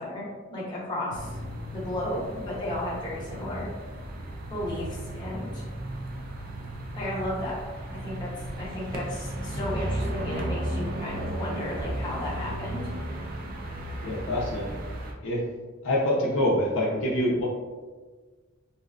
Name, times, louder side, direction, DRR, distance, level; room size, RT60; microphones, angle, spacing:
voice 1, 0.0-1.4 1.7-3.7 4.5-5.6 6.9-7.6 7.9-12.9, left 1 dB, 20° left, -7 dB, 0.6 m, -34 dB
sound 1, 1.1-15.1, right 1 dB, 45° right, 0.3 m, -35 dB
voice 2, 14.0-14.8 15.2-15.4 15.8-17.4, left 1 dB, 65° left, -4 dB, 0.6 m, -25 dB
2.6 x 2.3 x 2.3 m, 1.4 s
head